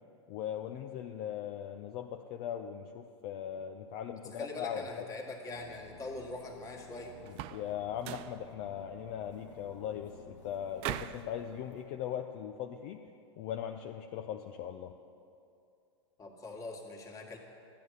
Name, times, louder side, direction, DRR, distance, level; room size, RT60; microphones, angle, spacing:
voice 1, 0.3-4.8 7.5-13.0 13.4-14.9, left 9 dB, 45° left, 5 dB, 0.6 m, -39 dB
voice 2, 4.1-7.2 16.2-17.4, left 2 dB, 20° left, 1 dB, 1.9 m, -42 dB
sound 1, 5.5-11.9, left 1 dB, 85° left, 1.8 m, -54 dB
sound 2, 7.3-7.7 8.0-8.4 10.8-11.3, right 14 dB, 40° right, 0.4 m, -39 dB
13.5 x 9.6 x 6.6 m, 2.6 s
hypercardioid pair, 110°, 15 cm